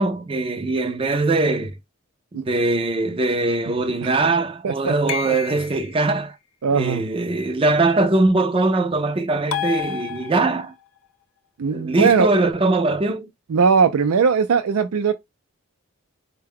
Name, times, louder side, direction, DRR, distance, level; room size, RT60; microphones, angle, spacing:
voice 1, 0.0-1.8 2.3-6.4 6.7-10.7 11.7-13.3, right 2 dB, 25° right, 0.4 m, -21 dB
voice 2, 4.6-5.4 6.6-7.1 11.6-12.3 13.5-15.1, right 5 dB, 85° right, 0.4 m, -20 dB
sound 1, 5.1-6.0 9.5-10.7, left 9 dB, 75° left, 0.5 m, -29 dB
4.6 x 2.2 x 3.4 m
head